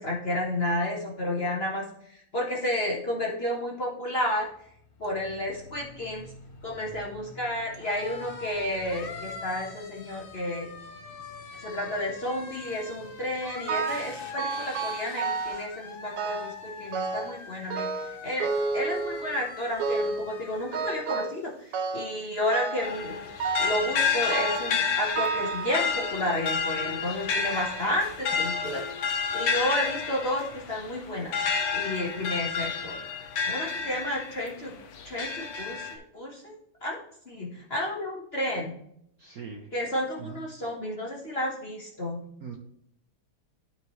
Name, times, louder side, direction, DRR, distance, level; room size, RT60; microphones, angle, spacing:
voice 1, 0.0-4.5 5.0-6.3 6.6-10.7 11.6-18.5 18.7-23.3 23.6-28.8 29.3-31.5 31.7-32.9 33.5-34.7 35.0-36.6 36.8-37.0 37.3-38.8 39.7-42.2, left 1 dB, 35° left, -2 dB, 1.2 m, -31 dB
sound 1, 4.5-20.9, left 4 dB, 65° left, 0.5 m, -43 dB
sound 2, 13.7-14.1 14.4-15.7 16.2-16.6 16.9-17.4 17.7-19.4 19.8-20.3 20.7-21.4 21.7-22.2 22.5-22.9 23.4-23.8 24.3-24.8 25.2-26.2 26.9-27.0 27.8-27.9 28.3-28.4, right 4 dB, 85° right, 1.7 m, -31 dB
sound 3, 22.8-34.5 35.0-35.9, left 5 dB, 80° left, 1.9 m, -30 dB
voice 2, 39.2-39.7 40.2-40.4 42.4-42.5, right 6 dB, 60° right, 1 dB, 1.0 m, -40 dB
12.5 x 4.7 x 3.1 m, 0.71 s
omnidirectional pair, 2.4 m